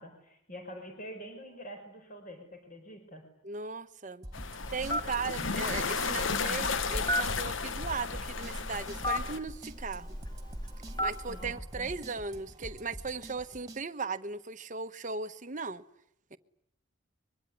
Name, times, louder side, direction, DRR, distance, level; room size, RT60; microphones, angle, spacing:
voice 1, 0.0-3.2 5.4-5.7 11.3-11.9, equal, 40° left, 5.0 m, -46 dB
voice 2, 3.4-4.2 4.7-10.2 11.0-15.8 16.3-16.4, right 4 dB, 35° right, 1.1 m, -37 dB
sound 1, 4.2-13.8, right 1 dB, 20° right, 2.3 m, -47 dB
sound 2, 4.3-9.4, left 5 dB, 65° left, 1.0 m, -34 dB
Telephone, 4.6-11.4, left 1 dB, 20° left, 2.0 m, -36 dB
25.0 x 23.0 x 9.7 m
head